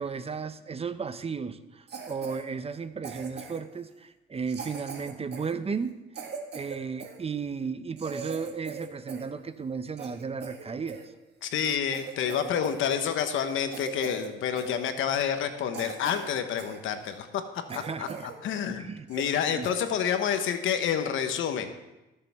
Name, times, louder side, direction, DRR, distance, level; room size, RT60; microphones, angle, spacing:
voice 1, 0.0-6.0 6.5-11.0 17.7-18.3 18.7-19.1 19.5-19.7, right 5 dB, 30° right, 12 dB, 0.6 m, -34 dB
Cough, 1.9-2.4 3.0-3.7 4.5-7.2 7.6-7.7 8.0-9.3 9.6-11.1 11.5-11.6 11.9-12.8 13.1-13.3 13.7-14.3 14.6-14.8 15.3-15.4 15.7-16.8 17.2-17.3 17.7-18.4 18.7-18.8 19.1-19.4 19.6-19.8 20.3-20.5, right 6 dB, 55° right, 1.7 m, -41 dB
voice 2, 11.4-17.3 17.7-18.1 18.4-21.7, left 8 dB, 80° left, 8 dB, 1.1 m, -28 dB
19.5 x 6.7 x 3.5 m, 1.0 s
cardioid pair, 90°, 20 cm